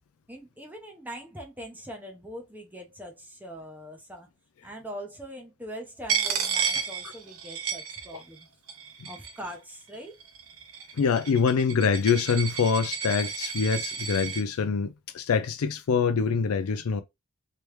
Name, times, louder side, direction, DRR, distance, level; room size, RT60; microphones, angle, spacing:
voice 1, 0.3-4.3 4.6-8.5 9.1-10.1, equal, 10° right, 0.8 m, -42 dB
Coin (dropping), 6.1-8.4 8.7-9.5 10.2-14.4, right 6 dB, 80° right, 0.8 m, -32 dB
voice 2, 10.9-17.0, left 5 dB, 85° left, 0.4 m, -25 dB
3.3 x 3.0 x 3.2 m
head